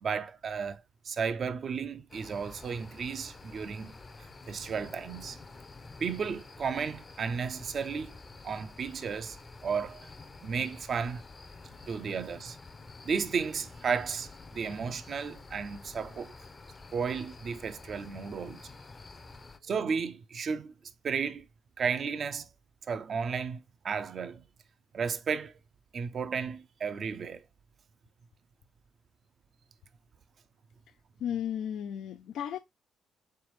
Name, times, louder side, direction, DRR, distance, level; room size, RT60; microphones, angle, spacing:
voice 1, 0.0-3.9 4.5-5.4 6.0-8.1 8.4-9.4 9.6-10.0 10.4-11.2 11.9-12.6 13.0-16.3 16.9-18.6 19.7-20.7 21.0-21.5 21.8-22.4 22.9-23.6 23.8-24.4 24.9-25.5 25.9-27.4, right 6 dB, 50° right, 0.5 m, -33 dB
sound 1, 2.1-19.6, left 3 dB, 30° left, 0.5 m, -49 dB
voice 2, 31.2-32.6, left 9 dB, 75° left, 0.3 m, -34 dB
3.8 x 3.3 x 3.1 m
cardioid pair, 90°, 0 cm